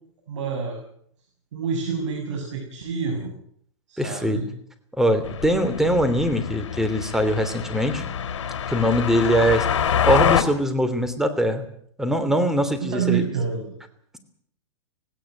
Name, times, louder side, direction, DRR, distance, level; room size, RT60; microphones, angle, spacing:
voice 1, 0.3-0.8 1.5-3.3 3.9-4.4 12.8-13.7, right 6 dB, 75° right, 2 dB, 6.6 m, -27 dB
voice 2, 4.0-4.4 5.0-8.0 8.7-9.6 10.1-11.6 12.0-13.2, equal, 5° right, 9 dB, 3.1 m, -22 dB
sound 1, 5.2-10.4, left 8 dB, 80° left, 3.3 m, -25 dB
17.5 x 17.5 x 9.2 m, 0.65 s
hypercardioid pair, 135°, 15 cm